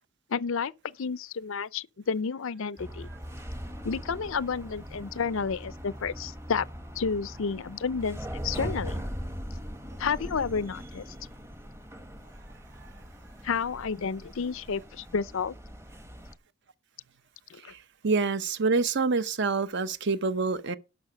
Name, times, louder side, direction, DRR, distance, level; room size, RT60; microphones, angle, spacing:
voice 1, 0.3-3.1 3.8-6.7 7.0-9.0 10.0-11.0 13.4-15.5 17.5-17.7, left 5 dB, 60° left, 0.5 m, -31 dB
sound 1, 2.8-16.3, equal, 10° right, 1.0 m, -40 dB
voice 2, 17.6-20.8, right 4 dB, 50° right, 0.8 m, -27 dB
11.5 x 6.0 x 6.3 m
head